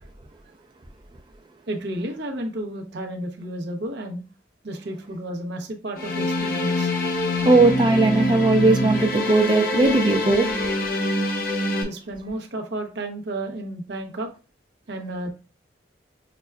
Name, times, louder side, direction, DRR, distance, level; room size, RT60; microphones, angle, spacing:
voice 1, 1.7-4.2 4.6-6.9 11.8-14.3 14.9-15.3, right 1 dB, 70° right, 0.7 m, -32 dB
sound 1, 6.0-11.8, left 1 dB, 50° left, 0.6 m, -25 dB
voice 2, 7.4-10.5, right 2 dB, 25° right, 0.4 m, -18 dB
5.8 x 2.2 x 2.2 m
head